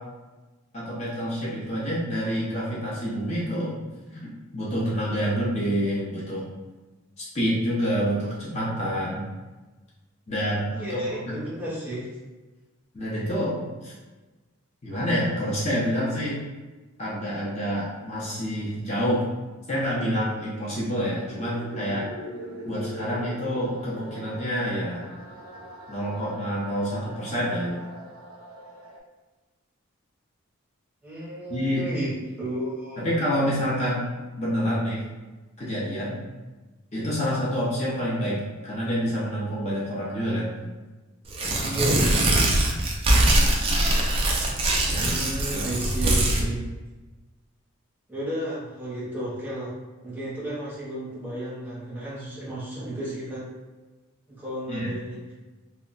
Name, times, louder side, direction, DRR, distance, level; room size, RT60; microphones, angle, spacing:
voice 1, 0.7-3.8 4.2-6.5 7.2-9.3 10.3-11.0 11.3-11.4 12.9-13.9 14.8-16.4 17.0-19.2 19.7-22.1 22.7-25.1 25.9-27.8 31.5-31.8 33.0-35.0 35.6-36.2 36.9-40.5 44.9-45.1 45.5-45.7 54.7-55.0, equal, 30° left, -7 dB, 0.5 m, -27 dB
voice 2, 10.7-12.1 31.0-33.1 41.6-42.3 44.9-46.6 48.1-49.8 50.0-53.5 54.3-55.3, right 1 dB, 10° right, -8 dB, 0.7 m, -33 dB
sound 1, 21.3-29.0, equal, 80° right, 0.7 m, -41 dB
Tearing, 41.3-46.4, right 1 dB, 25° right, 0.3 m, -22 dB
2.1 x 2.1 x 3.8 m, 1.2 s
head